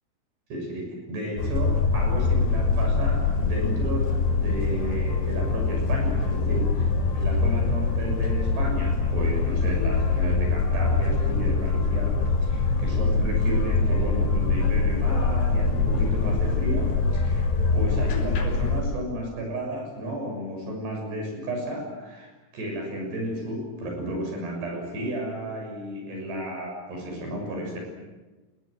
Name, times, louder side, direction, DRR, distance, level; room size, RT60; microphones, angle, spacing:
voice 1, 0.5-6.8 7.1-17.5 17.7-27.8, equal, 65° right, 1 dB, 8.8 m, -33 dB
sound 1, 1.4-18.8, left 3 dB, 85° left, 8.6 m, -24 dB
29.0 x 20.5 x 8.2 m, 1.2 s
omnidirectional pair, 5.2 m